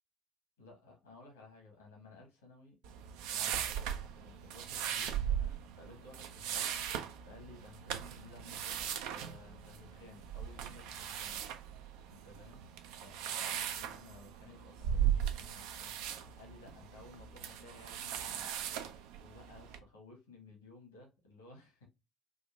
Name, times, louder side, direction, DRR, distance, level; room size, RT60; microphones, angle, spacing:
voice 1, 0.6-2.8 3.3-6.8 7.2-11.4 12.1-12.6 13.0-21.9, left 3 dB, 85° left, 1.1 m, -57 dB
sound 1, 2.8-19.8, right 9 dB, 70° right, 0.3 m, -38 dB
3.7 x 2.4 x 2.3 m
figure-of-eight pair, 50°, 0 cm